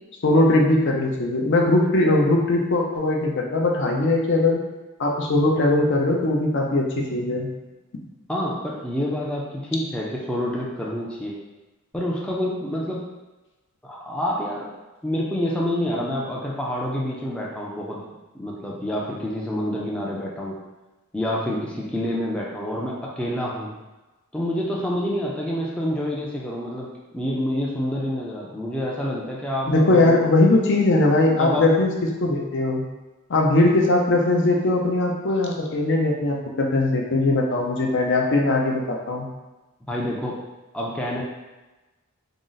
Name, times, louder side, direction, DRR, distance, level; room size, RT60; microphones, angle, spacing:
voice 1, 0.2-4.6 5.0-7.5 29.7-31.9 32.2-32.8 33.3-39.3, left 2 dB, 60° left, 0 dB, 0.6 m, -20 dB
voice 2, 8.3-11.3 11.9-13.0 13.8-14.7 15.0-18.0 18.3-20.6 21.1-23.7 24.3-30.1 31.4-31.7 39.9-40.4 40.7-41.2, left 1 dB, 5° left, -4 dB, 0.4 m, -27 dB
3.7 x 2.1 x 3.9 m, 1.1 s
head